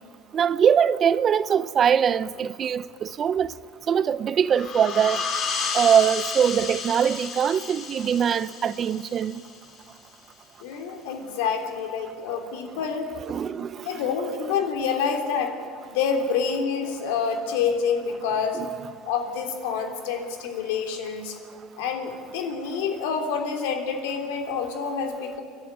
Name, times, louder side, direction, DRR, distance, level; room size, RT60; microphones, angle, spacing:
voice 1, 0.3-3.6 3.9-5.2 5.7-9.4 13.3-13.9 18.6-18.7, right 8 dB, 35° right, 0.6 m, -22 dB
sound 1, 4.5-9.8, left 5 dB, 45° left, 3.0 m, -32 dB
voice 2, 10.6-13.1 13.4-15.5 15.9-18.7 19.1-21.4 21.8-25.4, left 6 dB, 85° left, 3.4 m, -27 dB
30.0 x 11.5 x 9.4 m
supercardioid pair, 120°, 0 cm